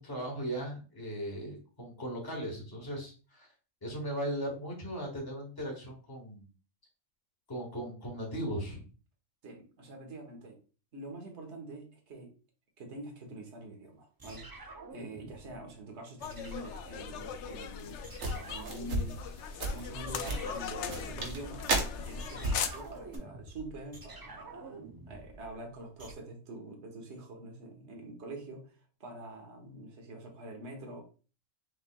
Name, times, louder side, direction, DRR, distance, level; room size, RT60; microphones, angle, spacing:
voice 1, 0.0-3.5 3.8-6.5 7.5-8.8, right 1 dB, 15° left, -2 dB, 1.5 m, -38 dB
voice 2, 9.4-10.6 10.9-12.3 12.8-18.0 18.3-19.2 19.7-31.0, right 1 dB, 60° right, 2 dB, 1.4 m, -46 dB
sound 1, 14.2-15.7 16.2-17.7 18.0-19.6 20.1-26.1, right 3 dB, 35° right, 0.3 m, -49 dB
sound 2, 16.2-22.7, left 7 dB, 70° left, 0.8 m, -39 dB
sound 3, 17.8-23.2, right 2 dB, 80° right, 1.4 m, -35 dB
6.6 x 3.3 x 2.2 m, 0.36 s
omnidirectional pair, 1.4 m